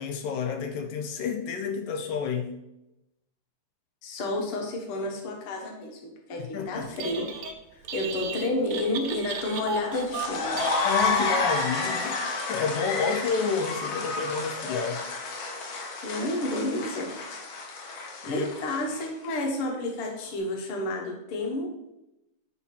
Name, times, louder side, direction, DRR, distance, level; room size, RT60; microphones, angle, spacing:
voice 1, 0.0-2.5 6.5-6.9 10.8-12.2 12.5-15.0 18.2-18.5, left 6 dB, 85° left, 5 dB, 2.1 m, -30 dB
voice 2, 4.0-7.3 7.9-10.6 16.0-17.1 18.3-21.7, left 2 dB, 55° left, 1 dB, 1.7 m, -30 dB
Telephone, 6.8-7.6 7.8-11.5, right 5 dB, 85° right, 1.2 m, -35 dB
sound 1, 9.9-19.3, left 3 dB, 70° left, 2.3 m, -30 dB
8.4 x 2.9 x 5.8 m, 0.91 s
omnidirectional pair, 3.4 m